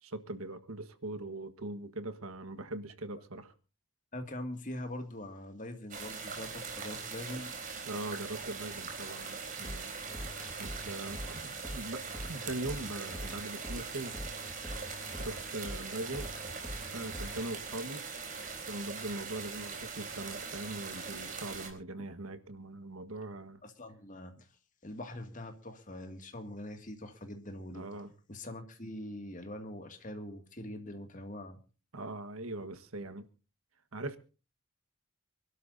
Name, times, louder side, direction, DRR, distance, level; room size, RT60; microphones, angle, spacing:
voice 1, 0.0-3.5 7.9-9.9 10.6-12.0 12.3-14.2 15.2-18.1 18.6-23.6 27.7-28.1 31.9-33.2 33.9-34.2, right 2 dB, 90° right, 1.5 m, -41 dB
voice 2, 4.1-7.5 22.0-22.1 23.6-24.5 24.8-27.9 28.3-31.6, left 1 dB, 40° left, 2.2 m, -43 dB
sound 1, 5.9-21.7, right 5 dB, 40° right, 3.9 m, -41 dB
sound 2, 9.6-17.4, equal, ahead, 1.8 m, -43 dB
27.5 x 12.5 x 2.7 m
head